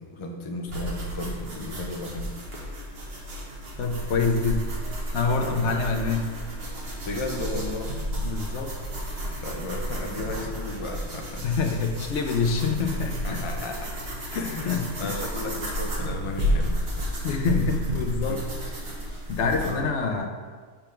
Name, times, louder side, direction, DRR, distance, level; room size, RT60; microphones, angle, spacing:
voice 1, 0.0-2.3 5.4-5.6 7.1-8.0 9.4-11.4 13.2-13.9 14.3-17.1 18.3-18.7 19.6-19.9, left 2 dB, 35° left, 2 dB, 0.5 m, -35 dB
sound 1, 0.7-19.7, equal, 50° right, 1.4 m, -32 dB
voice 2, 3.8-4.7 5.1-6.4 8.2-8.8 11.4-13.5 14.3-15.2 17.2-18.5 19.3-20.3, left 4 dB, 65° left, 4 dB, 0.9 m, -26 dB
6.9 x 3.5 x 5.7 m, 1.5 s
omnidirectional pair, 1.3 m